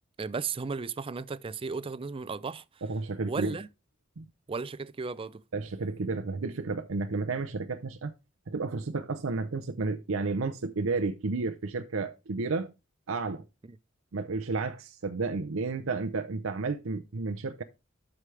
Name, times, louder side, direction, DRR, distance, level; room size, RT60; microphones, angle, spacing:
voice 1, 0.2-2.6 3.3-3.7 4.5-5.4 13.6-13.8, right 4 dB, 25° right, 0.4 m, -35 dB
voice 2, 2.8-3.6 4.2-4.3 5.5-8.1 8.5-12.7 13.1-13.4 14.1-17.6, right 3 dB, 75° right, 0.6 m, -32 dB
12.5 x 5.0 x 3.3 m
head